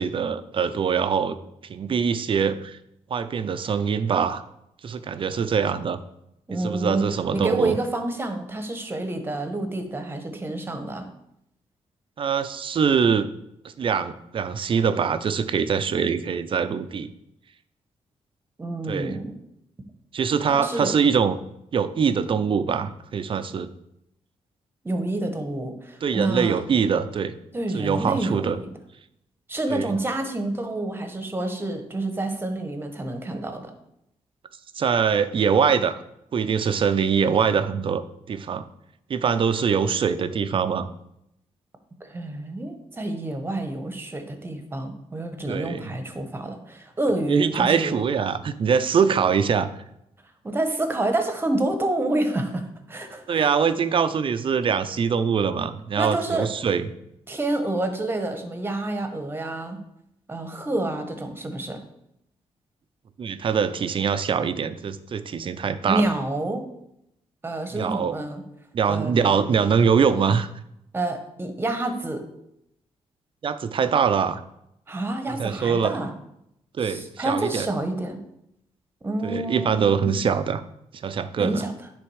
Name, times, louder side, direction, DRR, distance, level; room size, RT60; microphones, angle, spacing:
voice 1, 0.0-1.4 1.7-2.8 3.1-4.4 4.8-6.0 6.5-7.8 12.2-13.3 13.6-17.1 18.9-19.2 20.1-21.4 21.7-23.7 26.0-27.3 27.7-28.6 29.7-29.9 34.8-36.0 36.3-38.0 38.3-38.6 39.1-40.9 45.5-45.8 47.3-49.7 53.3-56.9 63.2-66.1 67.7-68.2 68.7-70.5 73.4-74.4 75.3-75.9 76.8-77.7 79.2-80.6 81.0-81.6, right 6 dB, 50° right, 12 dB, 0.5 m, -23 dB
voice 2, 6.5-7.0 7.3-11.0 18.6-19.4 20.5-20.9 24.8-26.7 27.5-28.7 29.5-33.7 42.0-47.9 50.4-53.5 56.0-56.5 57.3-59.8 60.3-61.8 65.9-66.7 67.4-68.4 68.9-69.4 70.9-72.2 74.9-76.1 76.8-78.2 79.0-80.1 81.4-81.7, right 2 dB, 20° right, 7 dB, 1.1 m, -28 dB
9.8 x 3.5 x 4.8 m, 0.81 s
cardioid pair, 100°, 12 cm